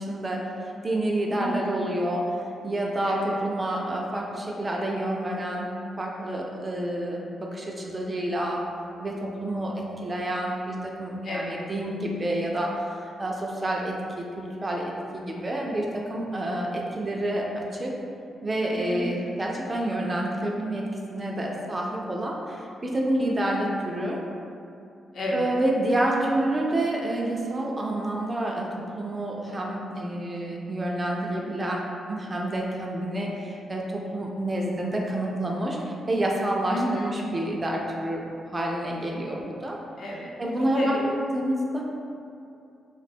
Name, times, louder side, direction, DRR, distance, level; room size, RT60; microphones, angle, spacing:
voice 1, 0.0-2.4 2.6-8.7 9.0-17.9 18.4-24.2 25.3-31.8 32.1-38.3 38.5-39.8 40.4-41.0 41.3-41.8, right 1 dB, 20° right, -2 dB, 0.3 m, -28 dB
voice 2, 1.3-1.8 3.0-3.3 11.2-11.6 18.9-19.4 25.1-25.5 36.7-37.2 40.0-41.0, equal, 60° left, -4 dB, 0.6 m, -32 dB
2.8 x 2.2 x 4.1 m, 2.6 s
wide cardioid pair, 155°, 0 cm